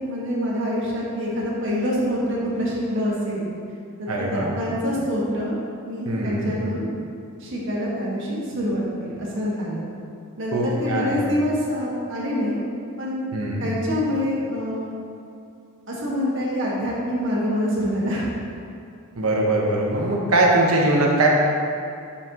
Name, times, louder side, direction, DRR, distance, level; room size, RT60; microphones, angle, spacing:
voice 1, 0.0-3.5 4.0-5.6 5.9-6.8 7.4-9.9 10.4-12.6 13.0-13.2 13.6-14.9 15.9-18.3, equal, 60° right, -5 dB, 1.6 m, -26 dB
voice 2, 4.1-4.5 6.0-6.5 10.5-11.2 13.3-13.7 19.1-21.3, right 2 dB, 85° right, -2 dB, 1.0 m, -21 dB
8.4 x 5.7 x 3.0 m, 2.5 s
head